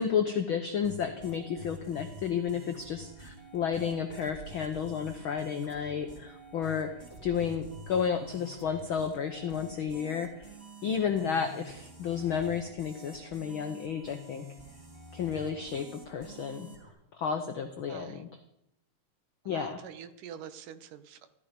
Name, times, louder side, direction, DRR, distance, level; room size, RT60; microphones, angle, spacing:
voice 1, 0.0-10.5 10.8-14.4 15.1-16.7 17.2-18.3 19.4-19.8, left 7 dB, 80° left, 6 dB, 1.1 m, -32 dB
sound 1, 0.8-16.9, right 1 dB, 15° right, 3.2 m, -49 dB
voice 2, 17.9-18.2 19.4-21.3, right 9 dB, 80° right, 11 dB, 2.7 m, -46 dB
15.0 x 13.5 x 5.2 m, 0.81 s
omnidirectional pair, 3.7 m